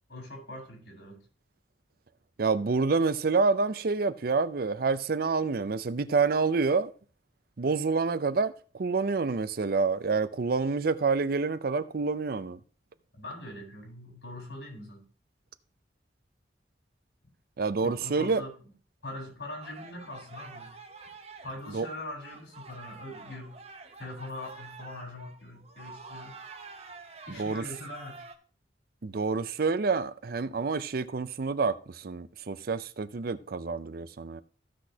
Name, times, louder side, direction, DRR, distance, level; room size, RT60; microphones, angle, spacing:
voice 1, 0.1-1.2 13.2-15.1 17.8-18.5 19.0-20.7 21.4-23.6 24.0-26.4 27.3-28.2, left 1 dB, 85° left, 4.1 m, -42 dB
voice 2, 2.4-6.9 7.6-12.6 17.6-18.5 21.7-21.9 27.4-27.7 29.0-34.4, right 4 dB, 55° right, 0.5 m, -28 dB
sound 1, 19.6-28.3, right 4 dB, 35° right, 1.0 m, -48 dB
15.0 x 6.1 x 2.8 m
head